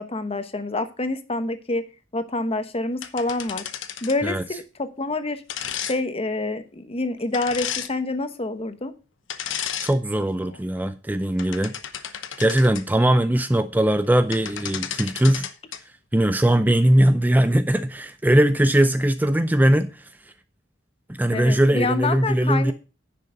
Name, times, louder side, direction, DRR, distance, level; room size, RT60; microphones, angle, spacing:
voice 1, 0.0-1.8 2.1-3.6 4.0-5.4 5.8-8.9 21.3-22.7, left 2 dB, 30° left, 1.0 m, -27 dB
sound 1, 3.0-4.3 5.5-6.0 7.3-7.9 9.3-9.9 10.4-10.6 11.2-12.8 14.0-14.1 14.3-15.8, left 9 dB, 90° left, 1.0 m, -32 dB
voice 2, 9.8-11.7 12.4-15.5 16.1-20.1 21.1-22.7, right 1 dB, 10° right, 0.5 m, -20 dB
10.0 x 6.7 x 5.1 m
head